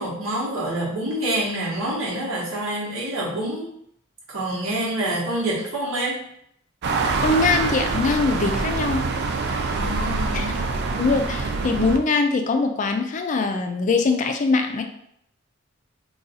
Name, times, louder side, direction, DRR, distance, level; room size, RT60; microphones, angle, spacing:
voice 1, 0.0-3.7 4.3-6.2 9.7-10.7, right 1 dB, 80° right, -5 dB, 1.1 m, -27 dB
sound 1, 6.8-12.0, right 3 dB, 55° right, 0.4 m, -25 dB
voice 2, 7.2-9.0 10.3-10.5 11.0-14.8, left 3 dB, 35° left, 6 dB, 0.3 m, -22 dB
2.6 x 2.3 x 4.0 m, 0.71 s
head